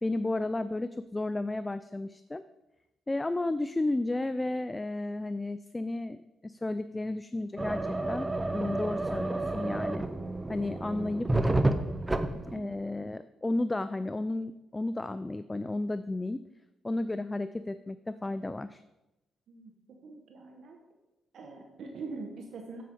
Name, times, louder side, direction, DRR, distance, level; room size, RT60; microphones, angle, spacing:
voice 1, 0.0-2.4 3.1-6.2 6.4-8.3 8.5-10.0 10.5-11.3 12.5-16.4 16.8-18.8, left 2 dB, 15° left, 12 dB, 0.3 m, -33 dB
sound 1, 7.6-12.6, right 2 dB, 15° right, 0.7 m, -30 dB
voice 2, 19.5-20.8 21.3-22.8, right 3 dB, 70° right, 2 dB, 1.2 m, -43 dB
7.6 x 7.5 x 5.4 m, 0.98 s
cardioid pair, 90°, 0 cm